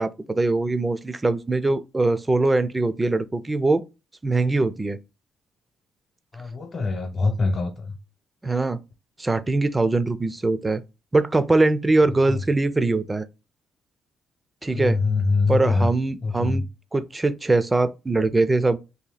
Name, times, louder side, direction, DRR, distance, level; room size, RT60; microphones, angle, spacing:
voice 1, 0.0-3.8 4.2-5.0 8.4-8.8 9.2-10.8 11.1-13.3 14.6-15.0 15.5-16.6 16.9-18.8, right 2 dB, 20° right, 0.4 m, -22 dB
voice 2, 6.3-8.0 12.3-12.4 14.7-15.9 16.2-16.7, left 3 dB, 40° left, 0.9 m, -24 dB
2.8 x 2.7 x 3.9 m
cardioid pair, 90°, 0 cm